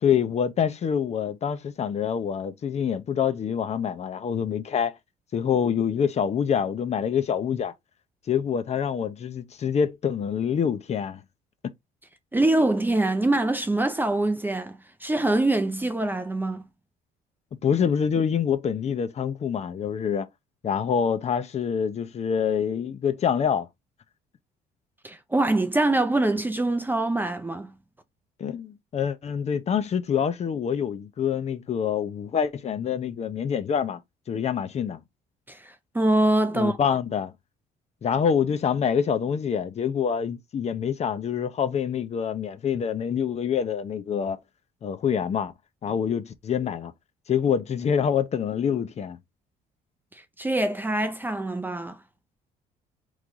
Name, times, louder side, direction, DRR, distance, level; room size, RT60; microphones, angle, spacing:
voice 1, 0.0-4.9 5.3-7.7 8.3-11.2 17.5-20.3 20.6-23.7 28.4-34.0 34.3-35.0 36.5-37.3 38.0-44.4 44.8-45.5 45.8-46.9 47.3-49.2, left 7 dB, 40° left, 0.7 m, -26 dB
voice 2, 12.3-16.6 25.0-27.7 35.5-37.0 50.1-52.0, right 2 dB, 10° right, 0.5 m, -24 dB
3.9 x 3.2 x 3.7 m
cardioid pair, 110°, 17 cm